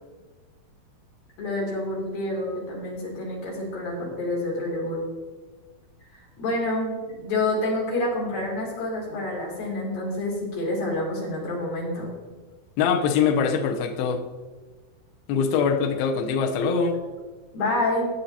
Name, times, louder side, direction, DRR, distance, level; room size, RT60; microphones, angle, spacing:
voice 1, 1.4-5.0 6.1-12.1 17.5-18.1, left 2 dB, 70° left, -4 dB, 4.6 m, -28 dB
voice 2, 12.8-14.2 15.3-17.0, left 6 dB, 85° left, 4 dB, 2.6 m, -23 dB
15.5 x 9.0 x 2.8 m, 1.3 s
omnidirectional pair, 4.3 m